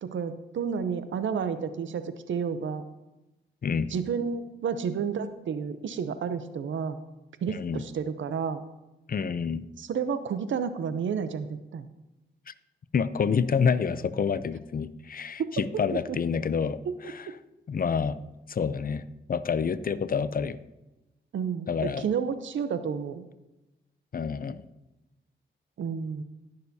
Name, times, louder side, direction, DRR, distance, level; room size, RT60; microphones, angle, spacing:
voice 1, 0.0-2.8 3.9-7.0 7.4-8.6 9.8-11.9 15.4-15.8 16.1-16.2 16.9-17.0 21.3-23.2 25.8-26.2, right 6 dB, 80° right, 11 dB, 0.7 m, -31 dB
voice 2, 7.5-7.8 9.1-9.6 12.5-12.6 12.9-16.8 17.1-17.2 17.7-18.2 18.5-20.6 21.7-22.0 24.1-24.6, left 6 dB, 50° left, 15 dB, 0.5 m, -28 dB
18.5 x 6.6 x 2.8 m, 1.0 s
cardioid pair, 60°, 20 cm